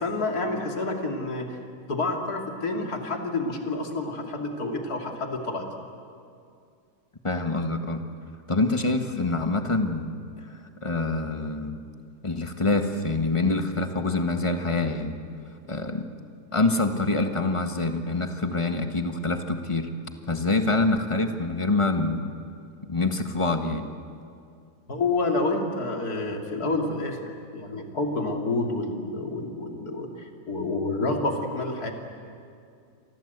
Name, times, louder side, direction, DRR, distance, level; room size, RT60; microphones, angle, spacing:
voice 1, 0.0-1.6 1.9-5.7 24.9-31.9, left 2 dB, 65° left, 2 dB, 3.3 m, -29 dB
voice 2, 7.2-8.0 8.5-11.8 12.2-15.2 15.7-16.1 16.5-19.9 20.3-22.3 22.9-23.9, left 2 dB, 20° left, 6 dB, 1.4 m, -26 dB
29.5 x 24.5 x 8.1 m, 2.4 s
omnidirectional pair, 1.8 m